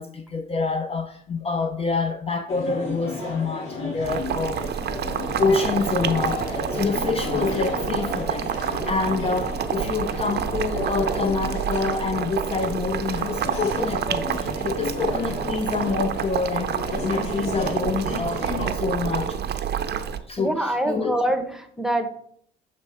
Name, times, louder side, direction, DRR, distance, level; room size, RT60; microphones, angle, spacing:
voice 1, 0.0-19.6 19.9-21.2, left 4 dB, 30° left, 0.5 m, -27 dB
sound 1, 2.5-18.7, left 3 dB, 85° left, 1.6 m, -33 dB
Boiling, 4.0-20.2, right 8 dB, 55° right, 0.6 m, -28 dB
voice 2, 20.4-22.1, right 1 dB, ahead, 0.9 m, -25 dB
6.7 x 3.1 x 4.9 m
cardioid pair, 90°, 20 cm